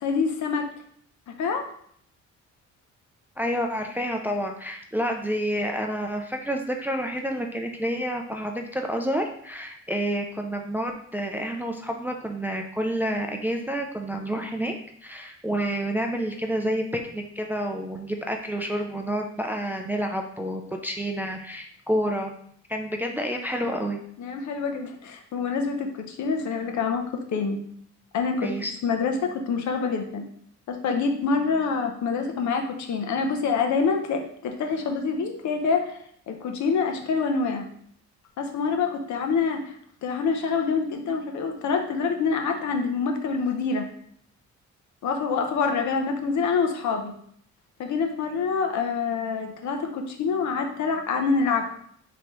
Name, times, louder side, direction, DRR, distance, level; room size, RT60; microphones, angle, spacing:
voice 1, 0.0-0.7 1.3-1.7 24.2-27.6 28.1-28.5 28.8-30.2 30.7-36.0 36.3-37.7 38.4-39.7 40.0-43.9 45.0-47.1 47.8-51.7, left 5 dB, 70° left, 4 dB, 0.8 m, -26 dB
voice 2, 3.4-14.7 15.0-22.3 22.7-24.0 28.4-28.7, equal, 5° right, 3 dB, 0.4 m, -29 dB
4.8 x 3.0 x 3.1 m, 0.65 s
cardioid pair, 90°, 30 cm